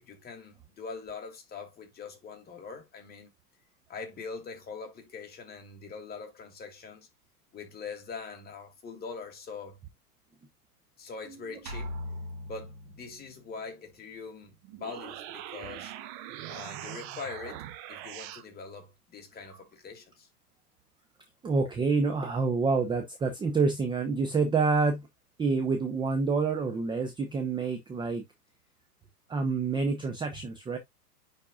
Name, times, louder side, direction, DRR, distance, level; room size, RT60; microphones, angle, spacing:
voice 1, 0.0-3.3 3.9-7.1 7.5-9.8 11.0-11.9 12.4-15.9 16.5-17.6 17.9-20.3, left 5 dB, 20° left, 2.4 m, -43 dB
sound 1, 11.7-13.5, left 1 dB, 90° right, 2.1 m, -39 dB
sound 2, 14.6-18.5, right 12 dB, 35° right, 1.0 m, -42 dB
voice 2, 21.4-25.0 25.4-28.2 29.3-30.8, right 4 dB, 10° right, 0.8 m, -27 dB
9.9 x 4.3 x 2.4 m
hypercardioid pair, 125°, 47 cm